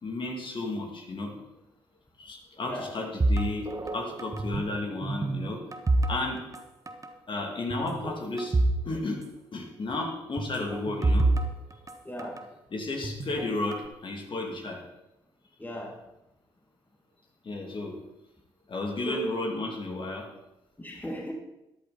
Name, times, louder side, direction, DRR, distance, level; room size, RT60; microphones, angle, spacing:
voice 1, 0.0-1.3 2.2-5.6 6.1-6.4 7.3-8.6 8.8-9.2 9.5-11.3 12.7-14.8 17.4-18.0 18.7-20.3, left 2 dB, 40° left, 1 dB, 2.9 m, -33 dB
sound 1, 3.2-4.8 5.0-6.6 6.9-7.1 7.7-8.8 9.1-9.2 10.4-12.4 13.0-13.9, right 2 dB, 25° right, 1.5 m, -27 dB
voice 2, 12.0-12.4 15.6-16.0 19.1-19.3 20.8-21.3, right 1 dB, 15° left, 0 dB, 2.4 m, -36 dB
13.0 x 11.0 x 4.3 m, 0.91 s
hypercardioid pair, 45°, 12 cm